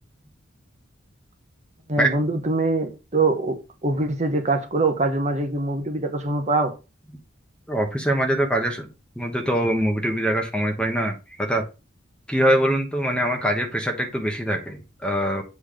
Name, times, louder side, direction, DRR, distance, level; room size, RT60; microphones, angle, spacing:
voice 1, 1.9-3.5 3.8-6.7, right 2 dB, 35° right, 1.1 m, -23 dB
voice 2, 7.7-8.9 9.2-11.6 12.3-15.4, right 1 dB, 5° left, 1.1 m, -23 dB
8.0 x 3.5 x 6.4 m
head